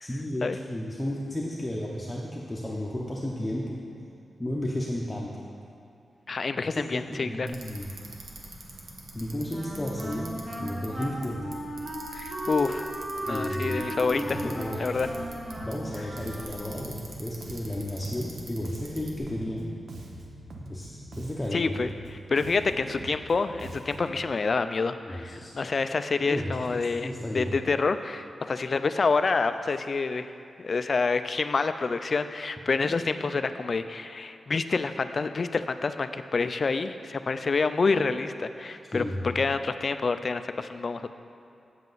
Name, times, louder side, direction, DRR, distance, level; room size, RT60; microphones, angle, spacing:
voice 1, 0.0-3.7 4.4-5.3 6.7-7.8 9.1-10.3 10.6-11.5 13.2-14.9 15.6-19.7 20.7-21.7 22.7-22.8 25.1-25.6 26.2-27.7 38.9-39.4, left 1 dB, 15° left, -4 dB, 0.7 m, -33 dB
voice 2, 6.3-7.5 12.1-12.9 13.3-14.4 14.8-15.1 21.5-30.3 30.6-39.0 39.3-41.1, left 4 dB, 45° left, 10 dB, 0.3 m, -27 dB
Bicycle, 7.5-19.2, right 2 dB, 60° right, 1.1 m, -46 dB
Wind instrument woodwind instrument, 9.5-16.8, right 1 dB, 35° right, 1.1 m, -36 dB
Bass guitar, 14.3-24.2, right 1 dB, 85° right, 0.8 m, -44 dB
8.1 x 7.5 x 3.9 m, 2.5 s
wide cardioid pair, 130°, 0 cm